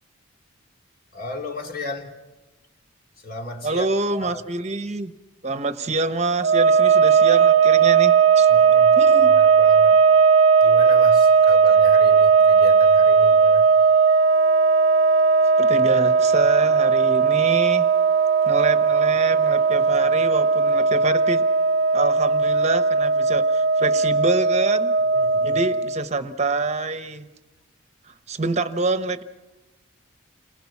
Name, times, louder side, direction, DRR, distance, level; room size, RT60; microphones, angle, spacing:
voice 1, 1.1-2.1 3.2-3.9 4.1-4.4 8.5-9.0 9.2-10.0 10.6-13.7 25.1-25.7, left 1 dB, 45° left, 1 dB, 3.1 m, -35 dB
voice 2, 3.6-5.1 5.4-8.5 9.0-9.3 15.6-17.9 18.4-21.4 21.9-24.9 25.4-27.3 28.1-29.2, right 3 dB, 35° right, 10 dB, 1.0 m, -26 dB
sound 1, 6.4-26.0, right 5 dB, 75° right, 0.7 m, -17 dB
29.0 x 21.0 x 6.0 m, 1.1 s
head